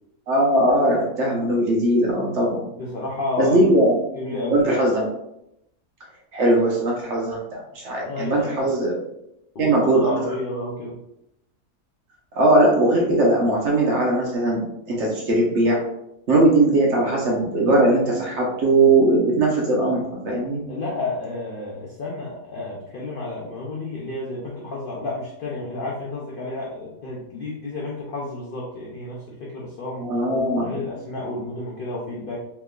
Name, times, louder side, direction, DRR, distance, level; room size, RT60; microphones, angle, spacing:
voice 1, 0.3-2.6 3.4-3.9 4.4-5.1 6.3-9.0 9.6-10.1 12.3-15.8 16.3-20.6 30.0-30.7, right 1 dB, 60° right, -2 dB, 1.0 m, -19 dB
voice 2, 2.8-3.6 4.2-4.6 8.0-8.7 9.5-11.0 20.7-30.1 30.6-32.4, left 2 dB, 65° left, -4 dB, 0.5 m, -31 dB
3.4 x 2.9 x 2.3 m, 0.81 s
omnidirectional pair, 1.6 m